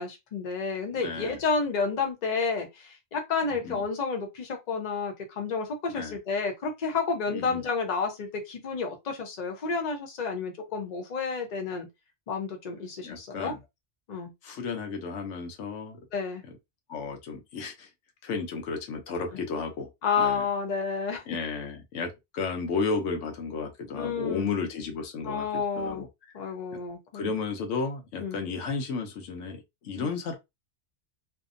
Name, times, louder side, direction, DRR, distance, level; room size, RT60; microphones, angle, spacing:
voice 1, 0.0-11.9 12.3-13.5 14.1-14.3 16.1-16.4 20.0-21.2 23.9-24.6 25.2-26.0 26.3-27.3 28.2-28.4 30.0-30.1, left 5 dB, 45° left, 0.7 m, -30 dB
voice 2, 1.0-1.4 3.4-3.8 5.9-6.2 7.3-7.6 13.0-13.6 14.4-16.1 16.4-16.5 16.9-17.9 18.2-19.9 20.2-20.4 21.3-26.1 26.7-26.8 27.1-30.4, left 4 dB, 85° left, 1.0 m, -33 dB
2.7 x 2.1 x 2.5 m
omnidirectional pair, 1.2 m